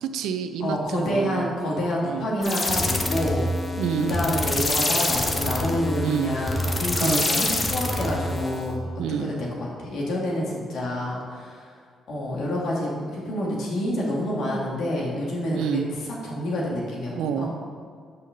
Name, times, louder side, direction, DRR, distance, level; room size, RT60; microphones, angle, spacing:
voice 1, 0.0-1.5 2.0-2.3 3.8-4.2 6.0-6.4 7.0-7.3 9.0-9.3 15.5-15.8 17.1-17.5, right 8 dB, 85° right, 8 dB, 0.5 m, -28 dB
voice 2, 0.6-3.5 4.1-8.9 9.2-11.7 12.1-15.8 16.2-17.5, left 1 dB, 75° left, -4 dB, 2.1 m, -28 dB
sound 1, 2.4-8.7, left 2 dB, 25° left, 0.9 m, -26 dB
6.5 x 5.7 x 5.1 m, 2.1 s
cardioid pair, 90°, 0 cm